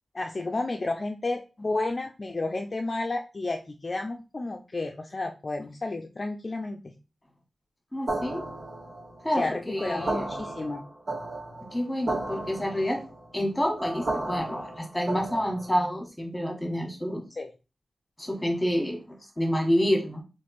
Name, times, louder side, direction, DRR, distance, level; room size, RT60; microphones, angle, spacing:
voice 1, 0.1-6.9 9.4-10.8 17.4-17.5, left 2 dB, 40° left, 4 dB, 0.4 m, -31 dB
voice 2, 7.9-8.4 9.2-10.3 11.7-13.0 13.3-17.2 18.2-19.0 19.4-20.2, equal, 10° left, 2 dB, 1.4 m, -28 dB
sound 1, 8.1-15.9, right 2 dB, 80° right, 2.0 m, -34 dB
3.4 x 3.1 x 4.2 m, 0.31 s
wide cardioid pair, 95°, 0 cm